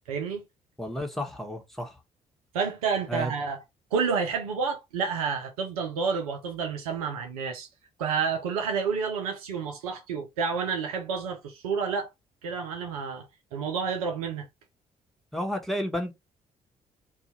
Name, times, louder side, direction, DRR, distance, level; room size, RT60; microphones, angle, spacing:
voice 1, 0.1-0.4 2.5-3.6 3.9-7.7 8.0-12.1 12.4-13.3 13.5-14.5, right 5 dB, 85° right, 0.5 m, -29 dB
voice 2, 0.8-1.9 3.1-3.3 15.3-16.1, equal, ahead, 1.2 m, -31 dB
2.7 x 2.3 x 4.1 m
figure-of-eight pair, 45°, 18 cm